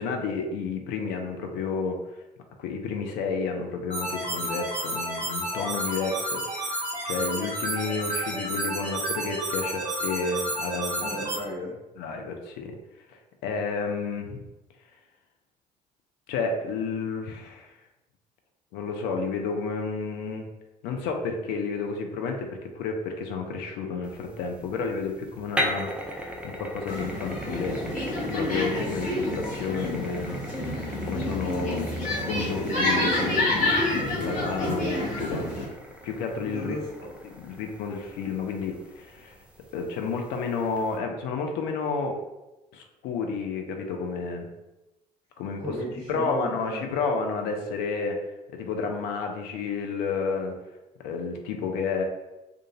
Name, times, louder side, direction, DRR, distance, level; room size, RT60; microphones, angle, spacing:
voice 1, 0.0-2.0 2.6-11.1 12.0-12.8 13.1-14.5 16.3-17.7 18.7-20.5 20.8-27.8 28.3-31.9 32.2-35.7 36.0-36.8 37.2-39.4 39.7-42.2 42.7-44.5 45.4-45.6 46.1-48.2 48.5-50.6 51.0-52.0, left 4 dB, 55° left, 3 dB, 0.5 m, -31 dB
sound 1, 3.9-11.4, right 1 dB, 85° right, 0.5 m, -31 dB
voice 2, 10.9-11.8 36.4-37.2 45.6-46.8, left 1 dB, 85° left, -14 dB, 1.2 m, -36 dB
sound 2, 24.0-41.0, equal, 5° right, 0.4 m, -39 dB
sound 3, 26.9-35.7, left 1 dB, 40° left, 1.0 m, -28 dB
2.4 x 2.4 x 2.8 m, 1.0 s
figure-of-eight pair, 50°, 20 cm